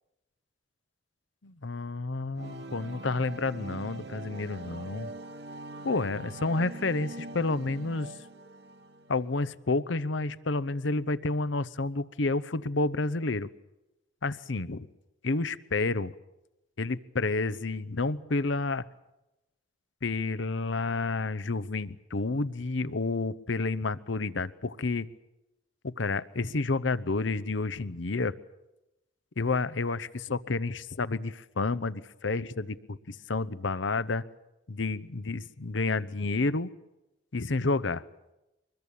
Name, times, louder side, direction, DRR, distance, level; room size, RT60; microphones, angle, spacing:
voice 1, 1.4-5.1 5.8-8.1 9.1-13.5 14.2-14.9 15.2-16.1 16.8-18.8 20.0-25.1 25.8-28.3 29.4-34.2 34.7-36.7 37.3-38.0, left 3 dB, 80° left, 16 dB, 0.8 m, -30 dB
Dark Chords, 2.3-9.2, right 2 dB, 55° right, 1.3 m, -43 dB
25.0 x 21.5 x 8.4 m, 0.95 s
head